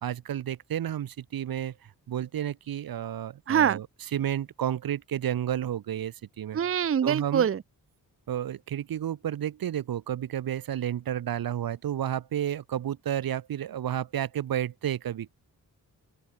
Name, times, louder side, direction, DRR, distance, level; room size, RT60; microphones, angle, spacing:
voice 1, 0.0-6.6 7.0-7.5 8.3-15.3, right 10 dB, 75° right, 0.9 m, -31 dB
voice 2, 3.5-3.8 6.5-7.6, right 8 dB, 40° right, 0.6 m, -24 dB
open air
wide cardioid pair, 130°, 35 cm